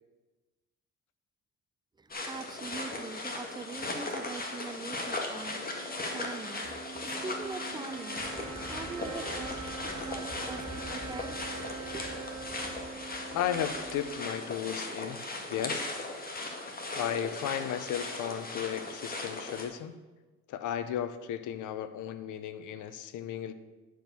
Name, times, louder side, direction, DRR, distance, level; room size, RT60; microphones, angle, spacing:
voice 1, 2.0-11.5 11.9-12.5, right 3 dB, 15° right, 12 dB, 0.5 m, -43 dB
sound 1, 2.1-19.7, left 2 dB, 30° left, 1.7 m, -38 dB
sound 2, 5.4-14.9, right 5 dB, 65° right, 1.8 m, -45 dB
sound 3, 8.2-14.2, equal, 5° left, 1.0 m, -47 dB
voice 2, 13.3-15.2 15.5-15.9 16.9-20.0 20.5-23.5, left 9 dB, 80° left, 12 dB, 0.8 m, -34 dB
10.5 x 4.7 x 6.7 m, 1.2 s
cardioid pair, 90°, 30 cm